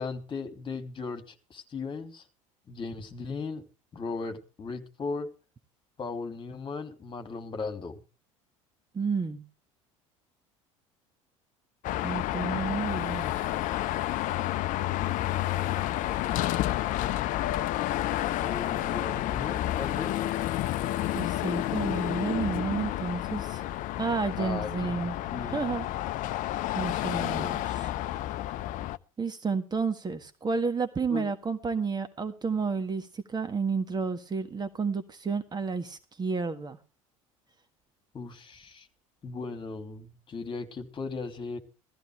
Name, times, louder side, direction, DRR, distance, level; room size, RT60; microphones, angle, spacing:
voice 1, 0.0-2.2 2.7-3.6 3.9-5.3 6.0-8.0 18.4-20.1 24.4-25.6 27.1-27.6 31.1-31.3 38.1-38.9 39.2-41.6, left 4 dB, 30° left, 2.8 m, -37 dB
voice 2, 8.9-9.4 12.0-13.4 21.1-23.6 24.0-25.2 25.5-25.9 26.7-27.9 29.2-36.8, right 5 dB, 25° right, 1.7 m, -31 dB
Car passing by / Traffic noise roadway noise / Engine, 11.8-29.0, left 14 dB, 50° left, 0.7 m, -30 dB
16.5 x 14.5 x 3.3 m
figure-of-eight pair, 70°, 17 cm